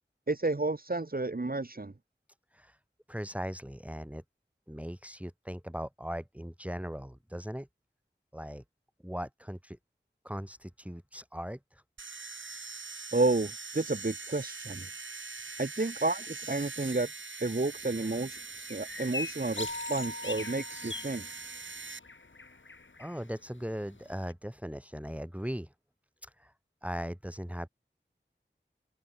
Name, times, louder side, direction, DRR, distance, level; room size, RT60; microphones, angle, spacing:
voice 1, 0.3-1.9 13.1-14.9 15.6-17.1 17.4-21.3, right 2 dB, 50° right, 1.4 m, -31 dB
voice 2, 3.1-4.2 4.7-7.7 8.3-8.6 9.0-9.8 10.2-11.8 23.0-25.7 26.2-26.5 26.8-27.7, equal, 5° right, 3.8 m, -39 dB
sound 1, 12.0-22.0, right 4 dB, 90° right, 1.1 m, -43 dB
sound 2, 17.6-24.3, left 3 dB, 90° left, 1.9 m, -44 dB
Keyboard (musical), 19.6-22.0, left 2 dB, 55° left, 5.6 m, -43 dB
wide cardioid pair, 45°, 19 cm